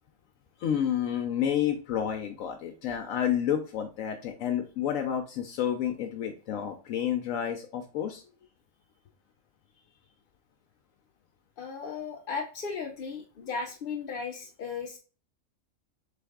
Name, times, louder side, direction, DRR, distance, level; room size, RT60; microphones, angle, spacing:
voice 1, 0.6-8.2, left 9 dB, 75° left, 4 dB, 0.9 m, -30 dB
voice 2, 11.6-15.0, left 5 dB, 60° left, 2 dB, 0.6 m, -36 dB
3.9 x 3.4 x 3.5 m, 0.36 s
omnidirectional pair, 1.4 m